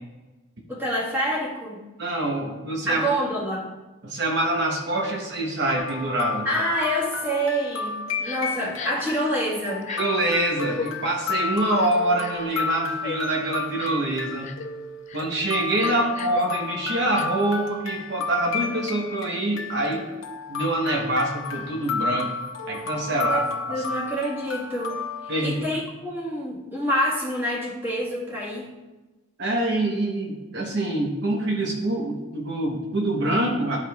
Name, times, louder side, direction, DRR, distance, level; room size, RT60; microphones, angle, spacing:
voice 1, 0.7-1.8 2.8-3.7 6.4-9.9 23.3-28.7, equal, 10° right, -6 dB, 1.4 m, -27 dB
voice 2, 2.0-3.0 4.0-6.5 9.9-14.5 15.1-20.0 20.5-22.3 22.7-23.4 23.7-23.8 25.3-25.6 29.4-33.8, right 1 dB, 55° right, 0 dB, 0.9 m, -25 dB
sound 1, 5.8-25.5, left 5 dB, 75° left, 0.9 m, -32 dB
Crying sobbing, 8.2-8.4 8.8-9.1 9.8-10.0 10.7-10.9 11.8-12.5 13.0-13.2 13.8-14.0 14.4-14.7 15.1-15.3 15.8-16.4 17.1-17.3, left 6 dB, 35° left, 0.4 m, -36 dB
11.5 x 4.8 x 2.3 m, 1.2 s
head